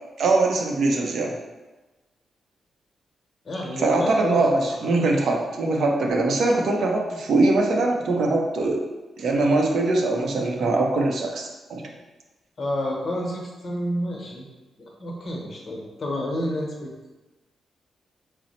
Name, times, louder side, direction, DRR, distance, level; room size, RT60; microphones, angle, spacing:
voice 1, 0.2-1.3 3.8-8.8 9.2-11.8, right 2 dB, 70° right, 1 dB, 0.6 m, -22 dB
voice 2, 3.4-5.0 12.6-14.4 14.8-16.9, left 1 dB, 45° left, -2 dB, 1.0 m, -30 dB
4.1 x 2.0 x 4.1 m, 1.2 s
cardioid pair, 105°, 0 cm